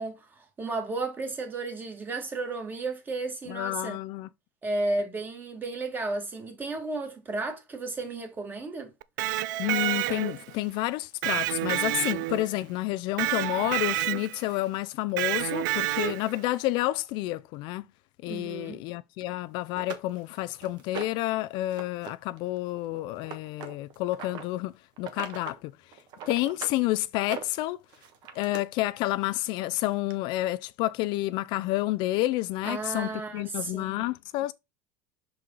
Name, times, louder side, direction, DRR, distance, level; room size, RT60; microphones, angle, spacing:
voice 1, 0.0-4.0 4.6-8.9 18.3-18.8 32.6-34.1, right 2 dB, 20° right, 1.7 m, -33 dB
voice 2, 3.5-4.3 9.6-17.8 18.2-25.7 26.3-27.8 28.3-34.5, left 17 dB, 50° left, 0.3 m, -30 dB
Electric guitar, 9.0-10.5 11.2-12.6 13.2-14.5 15.2-16.4, right 17 dB, 85° right, 0.4 m, -29 dB
sound 1, 19.2-19.3 19.8-21.3 21.7-22.1 22.4-24.5 25.0-25.6 25.9-26.8 27.2-28.6 29.6-29.7 30.1-30.2, right 7 dB, 45° right, 1.2 m, -41 dB
6.1 x 4.6 x 3.9 m
supercardioid pair, 150°, 10 cm